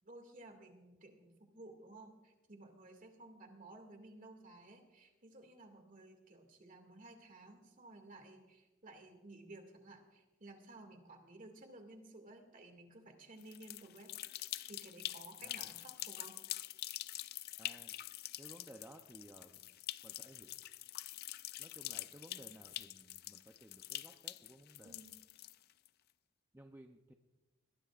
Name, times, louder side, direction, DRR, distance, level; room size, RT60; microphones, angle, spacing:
voice 1, 0.0-14.1 14.7-16.4 24.8-25.2, right 2 dB, 40° right, 4 dB, 2.2 m, -55 dB
sound 1, 13.4-25.9, left 14 dB, 50° left, 0.4 m, -46 dB
voice 2, 17.6-17.9 18.4-19.6 20.0-20.5 21.6-25.0 26.5-27.1, right 1 dB, 10° right, 4 dB, 0.6 m, -57 dB
21.5 x 18.0 x 2.5 m, 1.1 s
head